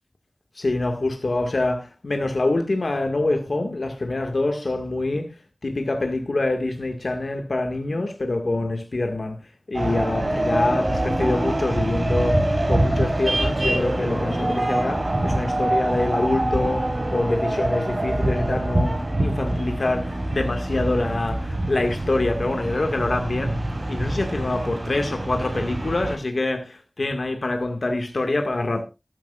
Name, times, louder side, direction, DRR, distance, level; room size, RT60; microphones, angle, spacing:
voice 1, 0.6-5.4 5.6-9.4 9.7-23.6 23.9-28.8, left 2 dB, 90° left, 1.9 m, -25 dB
sound 1, 9.7-26.2, right 1 dB, 55° right, 5.6 m, -25 dB
14.0 x 13.5 x 2.5 m
wide cardioid pair, 60°, 0 cm